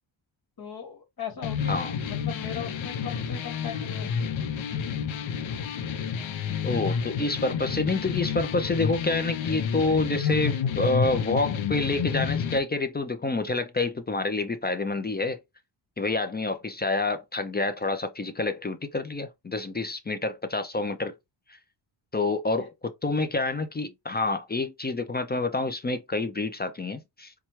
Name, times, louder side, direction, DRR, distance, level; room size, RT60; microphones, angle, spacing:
voice 1, 0.6-4.3 22.6-22.7, left 7 dB, 45° left, 1.2 m, -39 dB
sound 1, 1.4-12.6, left 7 dB, 75° left, 0.7 m, -30 dB
voice 2, 6.6-15.4 16.0-21.1 21.5-21.6 22.1-22.7 23.0-27.3, left 3 dB, 20° left, 0.4 m, -28 dB
4.3 x 2.3 x 3.0 m
cardioid pair, 105°, 48 cm